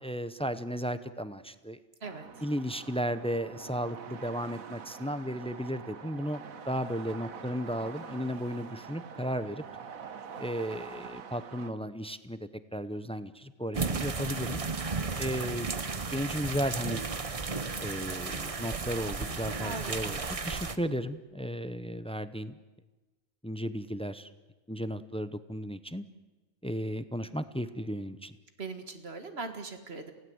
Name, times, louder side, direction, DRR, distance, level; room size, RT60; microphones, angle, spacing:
voice 1, 0.0-1.8 2.4-9.6 10.4-14.6 15.2-15.7 16.1-17.0 17.8-20.2 20.4-22.6 23.4-24.3 24.7-26.0 26.6-28.3, equal, 5° left, 13 dB, 0.5 m, -34 dB
sound 1, 2.0-11.7, right 6 dB, 85° right, 1.7 m, -45 dB
sound 2, 13.7-20.8, right 4 dB, 30° right, 0.9 m, -34 dB
voice 2, 19.6-20.2 28.6-30.1, right 3 dB, 50° right, 7 dB, 2.0 m, -40 dB
28.5 x 17.5 x 8.0 m, 1.2 s
omnidirectional pair, 1.4 m